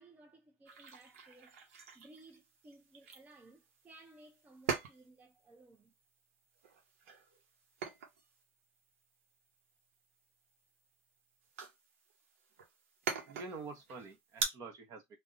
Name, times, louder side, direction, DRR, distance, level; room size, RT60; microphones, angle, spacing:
voice 1, 0.0-1.6 1.9-5.9, right 2 dB, 20° right, 0.6 m, -59 dB
sound 1, 0.7-14.4, right 6 dB, 90° right, 0.8 m, -45 dB
voice 2, 13.3-15.2, right 3 dB, 50° right, 1.2 m, -47 dB
3.3 x 2.2 x 2.6 m
supercardioid pair, 95°, 7 cm